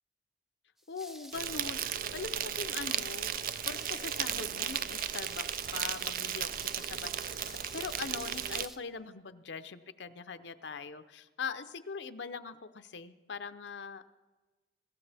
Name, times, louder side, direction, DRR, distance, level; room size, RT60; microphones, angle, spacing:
sound 1, 0.8-8.8, equal, ahead, 0.6 m, -51 dB
voice 1, 0.9-14.0, left 5 dB, 90° left, 11 dB, 0.7 m, -42 dB
Insect, 1.3-8.7, right 10 dB, 50° right, 0.4 m, -35 dB
23.5 x 13.0 x 3.4 m, 1.3 s
head